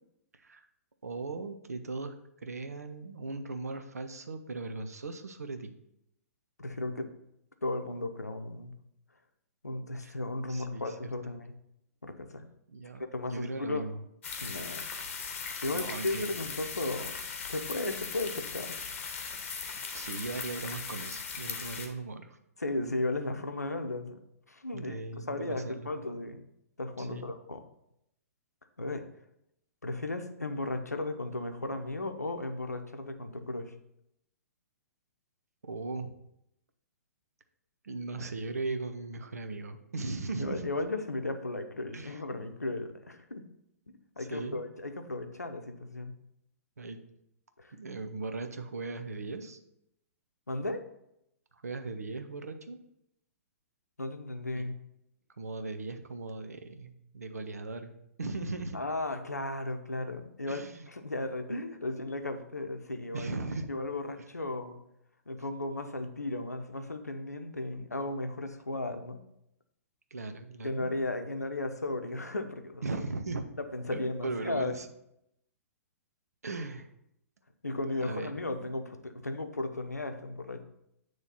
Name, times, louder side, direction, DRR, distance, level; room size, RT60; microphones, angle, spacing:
voice 1, 1.0-2.1 2.4-5.7 10.0-10.1 10.5-11.1 12.7-13.0 13.3-14.0 15.7-16.3 19.9-22.4 24.7-25.9 27.0-27.3 35.6-36.1 37.8-40.7 41.9-42.2 44.2-44.6 46.8-47.0 47.7-49.6 51.6-52.8 54.5-54.7 55.4-57.9 58.2-58.8 60.5-60.9 63.1-63.7 70.1-70.9 72.8-73.5 73.9-74.9 76.4-76.9 78.0-78.4, right 3 dB, 75° right, 8 dB, 0.7 m, -38 dB
voice 2, 6.6-7.1 7.6-8.7 9.6-11.6 12.0-12.5 13.1-13.9 14.4-14.9 15.6-17.1 17.5-18.8 22.6-24.2 24.5-26.5 26.8-27.6 28.8-29.1 29.8-33.7 40.4-43.5 44.2-46.2 47.6-47.8 50.5-50.8 54.0-54.8 58.7-63.3 63.7-64.8 65.3-69.2 70.6-72.9 73.6-74.8 77.6-80.6, left 2 dB, 85° left, 7 dB, 0.7 m, -35 dB
sound 1, 14.2-21.9, left 5 dB, 50° left, 1.0 m, -39 dB
8.8 x 3.2 x 4.1 m, 0.80 s
figure-of-eight pair, 115°, 8 cm